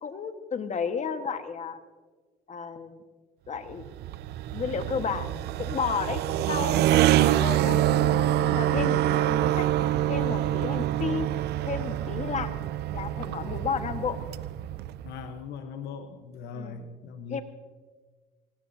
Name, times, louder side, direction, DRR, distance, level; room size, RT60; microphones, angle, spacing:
voice 1, 0.0-1.8 2.5-3.0 3.5-3.8 4.5-5.3 5.6-7.8 8.4-9.7 10.1-11.3 11.7-12.5 12.9-14.2 16.5-16.9 17.3-17.4, left 6 dB, 45° left, 8 dB, 1.5 m, -32 dB
sound 1, 3.7-15.3, right 13 dB, 70° right, 0.6 m, -26 dB
voice 2, 15.0-17.4, left 7 dB, 75° left, 7 dB, 1.1 m, -39 dB
24.5 x 18.0 x 2.8 m, 1.4 s
supercardioid pair, 85°, 17 cm